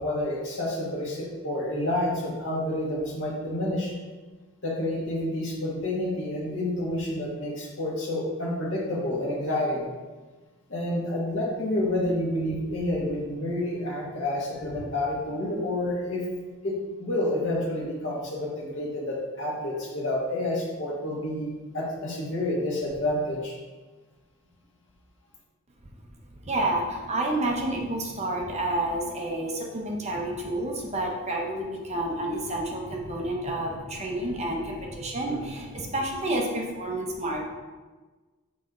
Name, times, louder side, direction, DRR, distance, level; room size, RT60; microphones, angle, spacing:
voice 1, 0.0-3.9 4.6-9.9 10.7-16.2 16.6-23.5, left 1 dB, 60° left, -4 dB, 1.5 m, -29 dB
voice 2, 26.3-37.4, right 1 dB, 30° right, 0 dB, 0.8 m, -29 dB
6.4 x 4.1 x 3.8 m, 1.3 s
head